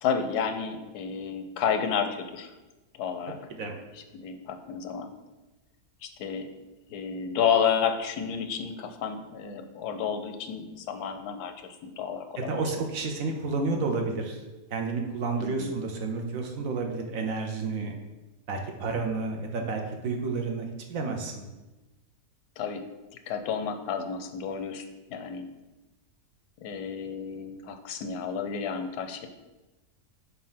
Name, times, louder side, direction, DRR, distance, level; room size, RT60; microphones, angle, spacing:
voice 1, 0.0-2.5 3.0-3.4 3.9-5.1 6.0-6.5 6.9-12.6 15.4-15.8 22.6-22.9 23.3-25.5 26.6-29.3, left 7 dB, 85° left, 7 dB, 1.2 m, -31 dB
voice 2, 12.4-14.4 14.7-17.9 18.5-21.5, right 4 dB, 65° right, 3 dB, 1.2 m, -30 dB
4.7 x 4.3 x 5.6 m, 1.1 s
omnidirectional pair, 1.7 m